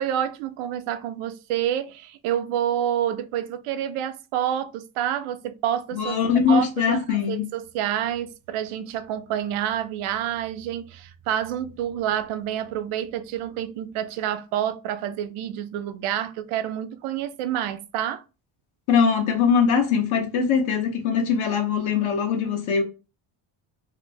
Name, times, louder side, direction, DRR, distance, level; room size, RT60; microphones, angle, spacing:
voice 1, 0.0-6.2 6.5-18.2, right 10 dB, 80° right, 0.6 m, -28 dB
voice 2, 5.9-7.4 18.9-22.8, left 6 dB, 70° left, 0.9 m, -22 dB
2.9 x 2.6 x 3.2 m
cardioid pair, 130°, 50 cm